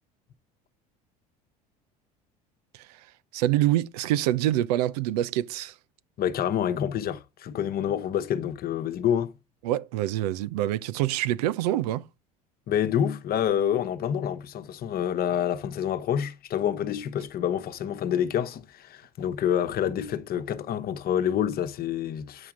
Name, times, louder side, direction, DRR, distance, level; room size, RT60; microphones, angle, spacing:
voice 1, 3.3-5.7 9.6-12.0, right 14 dB, 75° right, 0.6 m, -26 dB
voice 2, 6.2-9.4 12.7-22.5, left 9 dB, 50° left, 1.1 m, -27 dB
9.8 x 5.8 x 3.7 m
hypercardioid pair, 70°, 20 cm